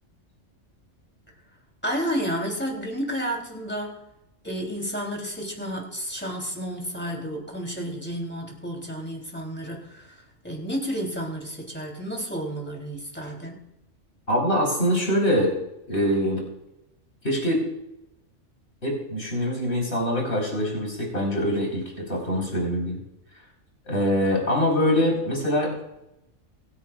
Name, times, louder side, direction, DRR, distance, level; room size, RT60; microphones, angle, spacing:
voice 1, 1.8-4.0 4.4-10.1 10.4-13.6, equal, 10° left, 0 dB, 3.3 m, -31 dB
voice 2, 14.3-15.5 15.9-16.4 17.2-17.6 18.8-23.0 23.8-25.7, equal, 60° left, -1 dB, 4.8 m, -24 dB
26.0 x 9.8 x 2.4 m, 0.86 s
omnidirectional pair, 1.3 m